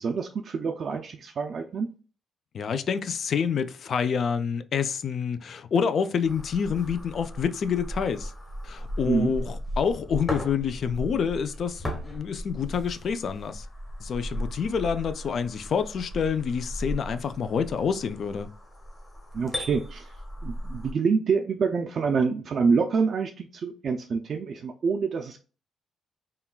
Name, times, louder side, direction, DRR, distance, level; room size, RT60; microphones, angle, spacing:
voice 1, 0.0-1.9 9.1-9.3 19.3-20.1 20.4-25.4, right 5 dB, 50° right, 0.4 m, -26 dB
voice 2, 2.5-8.3 8.6-13.7 14.0-18.5, left 6 dB, 55° left, 0.3 m, -27 dB
sound 1, 6.2-20.9, equal, 15° left, 0.9 m, -37 dB
3.7 x 2.2 x 2.3 m
cardioid pair, 120°, 0 cm